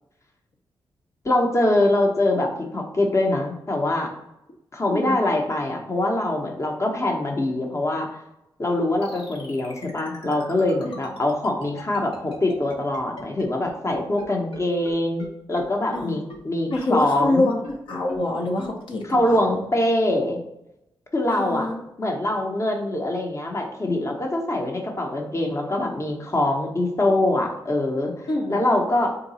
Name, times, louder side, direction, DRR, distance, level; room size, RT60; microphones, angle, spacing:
voice 1, 1.2-4.1 4.7-8.1 8.6-15.2 15.5-17.5 19.1-20.4 21.1-21.7 22.0-28.1 28.5-29.2, left 1 dB, 35° left, 2 dB, 0.8 m, -23 dB
voice 2, 4.9-5.2 10.8-10.9 15.9-16.2 16.7-19.6 21.4-21.8 28.3-28.6, left 2 dB, 65° left, -1 dB, 0.7 m, -26 dB
sound 1, 9.0-14.2 14.5-14.6 14.8-14.9 15.2-15.3 15.6-15.7 15.9-16.0 16.3-16.4 16.7-16.8 17.2-17.3 17.6-17.7 18.1-18.2 18.6-18.7 19.1-19.2, left 2 dB, 85° left, 1.1 m, -39 dB
3.8 x 2.3 x 4.0 m, 0.86 s
cardioid pair, 70°, 9 cm